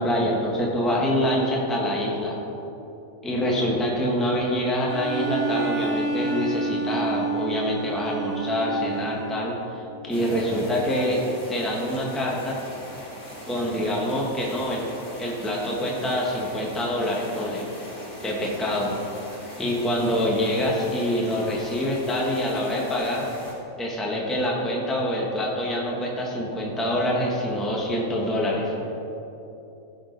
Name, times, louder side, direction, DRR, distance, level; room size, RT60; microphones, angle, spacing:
voice 1, 0.0-2.4 3.2-11.2 11.5-12.5 13.5-14.8 15.2-17.6 18.2-18.9 19.6-23.3 23.8-28.7, left 1 dB, ahead, -3 dB, 1.2 m, -25 dB
Bowed string instrument, 4.9-9.6, right 4 dB, 70° right, 1.4 m, -29 dB
sound 1, 10.1-23.5, equal, 50° left, 2.6 m, -41 dB
15.5 x 6.2 x 4.0 m, 3.0 s
omnidirectional pair, 1.6 m